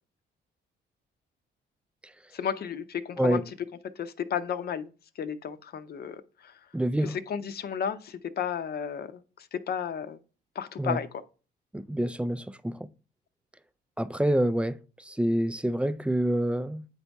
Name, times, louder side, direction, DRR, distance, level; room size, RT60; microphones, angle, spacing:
voice 1, 2.3-3.4 4.0-4.9 5.2-6.6 7.0-10.2 10.6-11.1, left 8 dB, 50° left, 0.7 m, -33 dB
voice 2, 6.7-7.2 10.8-11.0 11.7-12.9 14.0-16.9, right 1 dB, 5° right, 0.3 m, -27 dB
8.7 x 4.1 x 3.4 m
cardioid pair, 90°, 20 cm